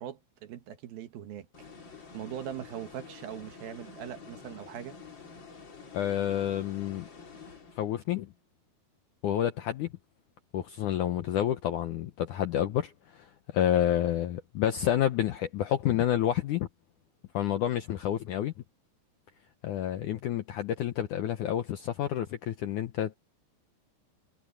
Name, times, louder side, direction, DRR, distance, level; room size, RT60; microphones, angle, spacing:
voice 1, 0.0-1.5 2.1-5.0, right 10 dB, 70° right, 3.1 m, -41 dB
sound 1, 1.5-8.1, left 5 dB, 30° left, 3.1 m, -49 dB
voice 2, 5.9-7.1 7.8-8.3 9.2-9.9 10.5-16.7 17.3-18.5 19.6-23.2, left 11 dB, 75° left, 1.9 m, -29 dB
omnidirectional pair, 4.6 m